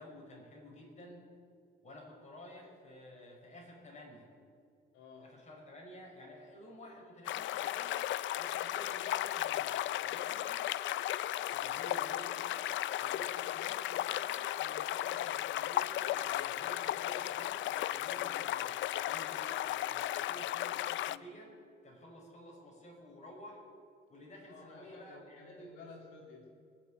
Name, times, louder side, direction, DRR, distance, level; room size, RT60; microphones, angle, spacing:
voice 1, 0.0-1.3 1.8-4.3 5.2-9.7 10.0-10.7 11.5-12.6 13.0-18.8 19.1-21.6 21.8-23.6 24.1-25.8, equal, 35° left, -1 dB, 5.6 m, -52 dB
voice 2, 4.9-5.3 24.5-26.5, left 4 dB, 90° left, -1 dB, 2.6 m, -53 dB
sound 1, 7.2-21.2, left 13 dB, 70° left, 0.4 m, -35 dB
21.5 x 7.3 x 9.3 m, 2.4 s
cardioid pair, 90°, 20 cm